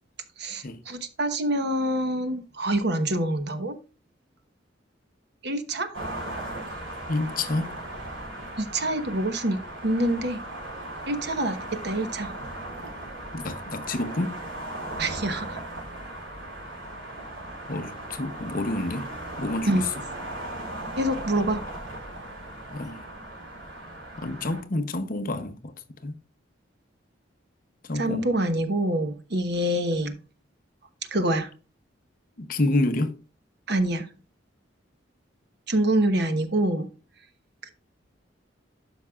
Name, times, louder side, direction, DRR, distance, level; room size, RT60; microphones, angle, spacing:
voice 1, 0.4-3.8 5.4-5.9 8.6-10.4 11.1-12.3 15.0-15.6 19.7-19.9 21.0-21.6 27.9-30.2 31.1-31.5 33.7-34.1 35.7-36.9 37.6-37.7, right 1 dB, 60° right, 1.1 m, -26 dB
sound 1, 5.9-24.6, right 1 dB, 85° right, 4.1 m, -37 dB
voice 2, 7.1-7.8 13.3-14.4 17.7-19.1 19.4-19.9 22.7-23.0 24.2-25.7 26.0-26.2 27.8-28.3 32.4-33.2, left 2 dB, 45° left, 0.8 m, -28 dB
12.0 x 5.5 x 2.4 m
head